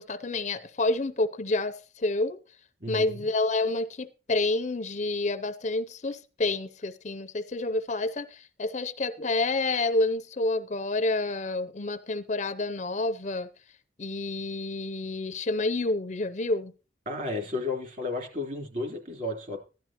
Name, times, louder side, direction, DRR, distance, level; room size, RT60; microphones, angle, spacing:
voice 1, 0.0-2.4 2.9-13.5 14.0-16.7, left 2 dB, 40° left, 0.6 m, -29 dB
voice 2, 2.8-3.3 17.1-19.6, left 2 dB, 45° right, 3.5 m, -33 dB
15.5 x 12.0 x 3.0 m
head